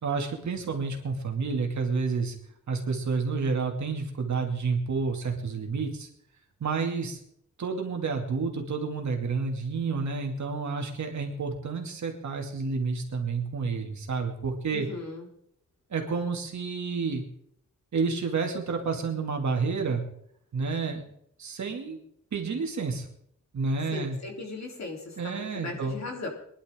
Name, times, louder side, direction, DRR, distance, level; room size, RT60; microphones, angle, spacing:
voice 1, 0.0-2.3 2.7-6.1 6.6-7.2 7.6-14.9 15.9-17.2 17.9-20.0 20.5-21.0 21.4-22.0 22.3-23.1 23.5-24.2 25.2-25.9, right 4 dB, 65° right, 2 dB, 2.7 m, -30 dB
voice 2, 14.7-15.3 23.9-26.3, left 3 dB, 60° left, 1 dB, 3.7 m, -37 dB
23.0 x 11.5 x 3.8 m, 0.70 s
wide cardioid pair, 150°, 31 cm